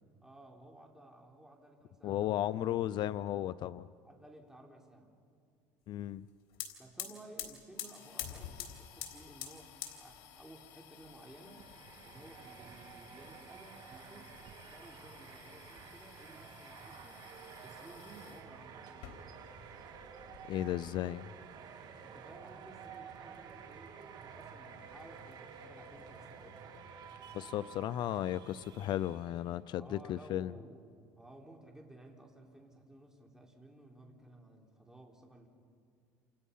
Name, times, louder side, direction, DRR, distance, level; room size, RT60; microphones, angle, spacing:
voice 1, 0.2-3.0 4.0-5.1 6.8-11.6 12.0-14.4 14.7-17.3 17.6-18.9 22.0-26.6 29.8-30.8 31.2-35.5, right 1 dB, 5° right, 1 dB, 4.1 m, -56 dB
voice 2, 2.0-3.9 5.9-6.3 20.5-21.3 27.3-30.5, left 12 dB, 55° left, 16 dB, 0.5 m, -35 dB
sound 1, 6.2-6.3 6.5-18.4 18.9-19.7 19.9-20.9, left 10 dB, 75° left, 3.6 m, -49 dB
sound 2, 11.1-29.6, right 6 dB, 50° right, 2.9 m, -51 dB
29.5 x 28.0 x 5.6 m, 2.3 s
cardioid pair, 115°, 9 cm